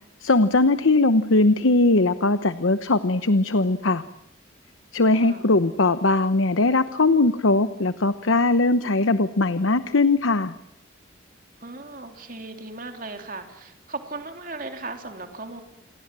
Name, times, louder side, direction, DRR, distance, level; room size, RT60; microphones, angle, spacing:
voice 1, 0.2-4.0 4.9-10.5, left 2 dB, 85° left, 12 dB, 1.0 m, -20 dB
voice 2, 5.2-5.6 11.6-15.6, right 3 dB, 45° right, 5 dB, 3.1 m, -37 dB
28.5 x 22.5 x 7.6 m, 0.81 s
head